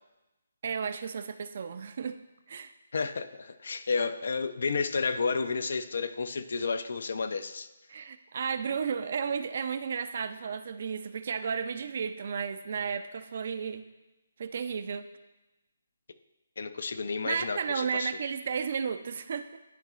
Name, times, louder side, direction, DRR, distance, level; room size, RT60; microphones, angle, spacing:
voice 1, 0.6-2.2 2.5-2.7 7.9-13.8 14.4-15.1 17.2-19.6, right 6 dB, 55° right, 11 dB, 0.4 m, -33 dB
voice 2, 2.9-7.7 16.6-18.1, left 4 dB, 65° left, 12 dB, 0.5 m, -31 dB
10.5 x 4.7 x 2.4 m, 1.0 s
hypercardioid pair, 160°, 0 cm